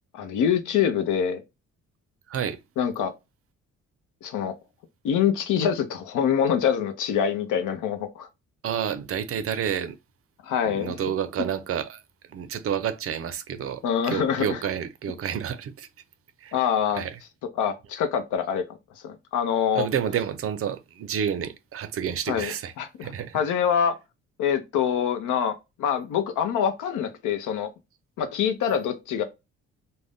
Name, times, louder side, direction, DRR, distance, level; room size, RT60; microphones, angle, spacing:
voice 1, 0.1-1.4 2.8-3.1 4.2-4.5 5.0-8.3 10.4-10.9 13.8-14.6 16.5-17.0 17.6-18.6 19.0-19.9 22.3-23.1 23.3-24.0 24.4-27.7 28.2-29.2, left 8 dB, 80° left, 0.7 m, -25 dB
voice 2, 2.3-2.6 8.6-10.0 10.6-12.0 12.3-15.9 16.4-16.6 16.9-17.2 19.7-22.7 23.0-23.4, right 8 dB, 50° right, 0.5 m, -29 dB
2.5 x 2.1 x 3.4 m
cardioid pair, 90°, 30 cm